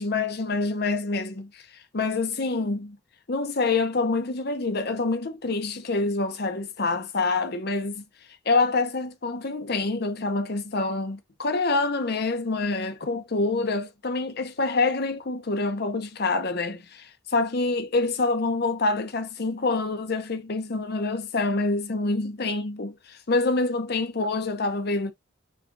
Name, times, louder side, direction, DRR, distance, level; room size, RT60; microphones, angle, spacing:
voice 1, 0.0-1.6 1.9-3.0 3.3-8.0 8.5-25.1, left 3 dB, 50° left, 0.7 m, -26 dB
5.5 x 2.4 x 2.5 m
head